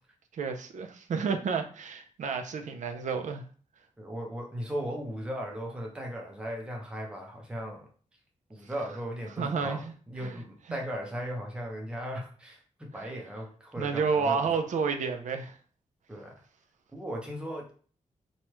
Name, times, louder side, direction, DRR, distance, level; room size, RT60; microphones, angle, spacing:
voice 1, 0.3-3.4 9.4-10.4 10.7-10.8 12.9-13.1 13.8-15.5, right 5 dB, 70° right, 0.5 m, -31 dB
voice 2, 4.0-7.9 8.5-14.7 16.1-16.3 16.9-17.7, equal, 5° right, 0.7 m, -37 dB
3.1 x 2.3 x 3.0 m
wide cardioid pair, 140°, 13 cm